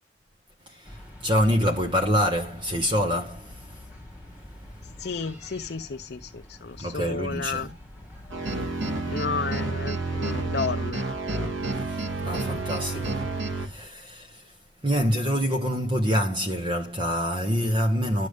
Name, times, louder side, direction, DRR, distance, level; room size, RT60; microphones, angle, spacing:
voice 1, 0.7-3.9 6.8-7.7 11.8-14.6 14.8-18.3, equal, 25° right, 1.0 m, -26 dB
sound 1, 0.8-13.9, left 1 dB, 10° right, 2.1 m, -46 dB
voice 2, 5.0-7.7 9.1-11.1, left 5 dB, 55° left, 0.5 m, -32 dB
sound 2, 8.3-13.7, right 3 dB, 85° right, 1.9 m, -29 dB
11.5 x 6.5 x 3.6 m
head